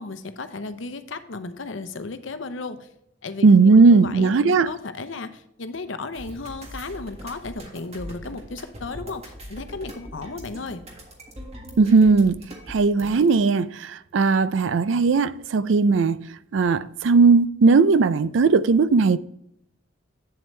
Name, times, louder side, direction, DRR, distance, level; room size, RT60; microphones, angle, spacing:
voice 1, 0.0-2.9 3.2-10.8, left 3 dB, 70° left, 0.8 m, -34 dB
voice 2, 3.4-4.7 11.8-12.4 12.7-16.2 16.5-19.2, right 4 dB, 70° right, 0.4 m, -17 dB
sound 1, 6.1-13.4, equal, 30° right, 1.7 m, -41 dB
8.6 x 7.6 x 3.2 m
head